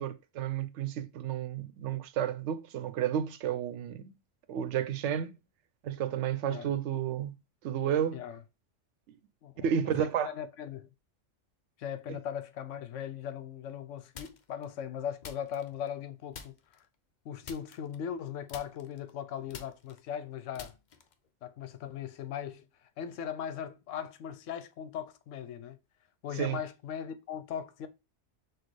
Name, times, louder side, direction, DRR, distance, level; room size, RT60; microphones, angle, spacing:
voice 1, 0.0-4.0 4.5-5.4 5.8-7.4 7.6-8.2 9.6-10.3 12.1-12.2 26.4-26.6, right 9 dB, 75° right, 0.9 m, -31 dB
voice 2, 9.9-10.9 11.8-16.5 17.2-20.7 21.4-22.7 23.0-25.8 26.2-27.9, left 9 dB, 80° left, 1.0 m, -39 dB
sound 1, 14.1-14.6 15.2-16.0 16.3-16.8 17.4-18.2 18.5-21.3, left 6 dB, 50° left, 0.5 m, -48 dB
6.2 x 2.4 x 3.1 m
omnidirectional pair, 1.3 m